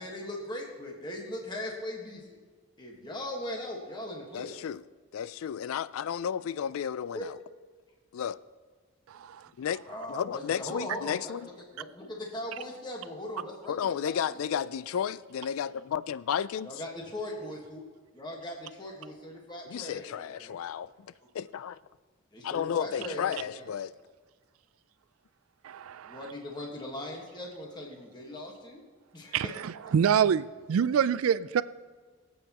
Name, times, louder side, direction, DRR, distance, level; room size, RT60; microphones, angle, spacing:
voice 1, 0.0-2.4 2.8-4.7 7.1-7.2 9.9-13.8 14.0-14.6 16.6-17.8 18.1-20.6 22.3-23.7 26.0-28.8 29.1-29.5, left 1 dB, 20° left, 1.4 m, -39 dB
voice 2, 4.3-4.8 5.1-7.4 8.1-8.4 9.6-9.8 10.1-11.4 13.7-16.7 19.7-20.9 21.3-21.8 22.4-23.9, left 8 dB, 75° left, 0.3 m, -32 dB
voice 3, 25.6-26.2 29.3-31.6, right 8 dB, 75° right, 0.3 m, -26 dB
23.5 x 8.2 x 2.9 m
head